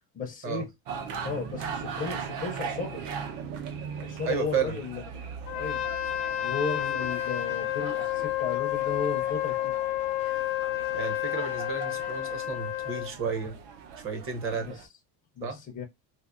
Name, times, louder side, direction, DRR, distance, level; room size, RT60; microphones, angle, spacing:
voice 1, 0.1-0.7 1.2-3.0 4.0-5.3 5.5-5.8 6.4-9.7 14.6-14.7 15.4-15.8, left 5 dB, 20° left, 0.4 m, -34 dB
sound 1, 0.9-14.9, right 6 dB, 80° right, 0.8 m, -40 dB
voice 2, 4.2-4.8 10.9-13.6 14.0-14.8 15.4-15.6, right 6 dB, 30° right, 0.6 m, -32 dB
Trumpet, 5.5-13.1, left 13 dB, 85° left, 0.8 m, -30 dB
4.3 x 2.4 x 2.4 m
cardioid pair, 180°, 44 cm